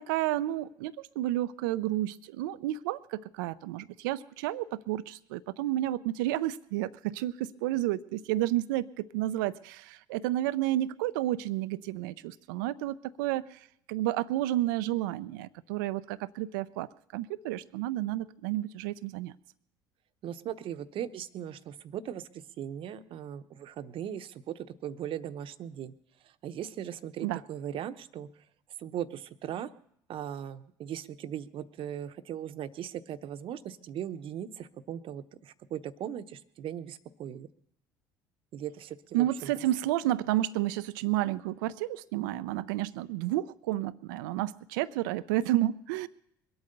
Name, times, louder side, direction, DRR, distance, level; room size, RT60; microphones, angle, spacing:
voice 1, 0.0-19.3 27.2-27.4 39.1-46.1, right 15 dB, 80° right, 15 dB, 0.5 m, -31 dB
voice 2, 20.2-25.9 26.2-28.3 28.8-29.7 30.1-37.5 38.5-39.5, right 10 dB, 55° right, 11 dB, 0.9 m, -39 dB
22.0 x 8.6 x 6.7 m, 0.74 s
hypercardioid pair, 65°, 11 cm